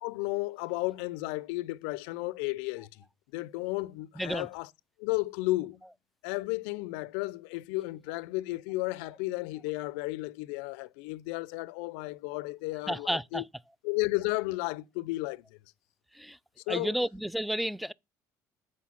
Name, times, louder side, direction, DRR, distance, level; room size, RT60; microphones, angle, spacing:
voice 1, 0.0-3.0 3.3-4.7 5.0-5.8 6.2-13.4 13.8-15.4 16.7-16.9, left 21 dB, 80° left, 0.4 m, -33 dB
voice 2, 4.2-4.5 12.9-13.4 16.1-16.4 16.7-17.9, equal, ahead, 0.4 m, -31 dB
8.3 x 4.5 x 5.8 m
supercardioid pair, 75°, 9 cm